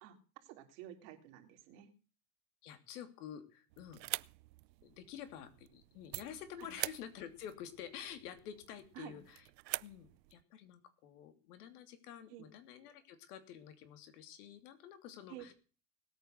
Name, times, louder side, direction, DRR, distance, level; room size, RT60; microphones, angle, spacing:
voice 1, 0.0-1.9 6.6-6.7 8.9-9.2 12.3-12.4 15.3-15.5, right 12 dB, 50° right, 4 dB, 3.5 m, -51 dB
voice 2, 2.6-4.0 4.8-9.5 9.8-15.5, left 9 dB, 65° left, 8 dB, 3.0 m, -49 dB
sound 1, 3.7-10.4, right 19 dB, 85° right, 0.7 m, -46 dB
19.0 x 9.1 x 6.7 m, 0.37 s
supercardioid pair, 150°, 50 cm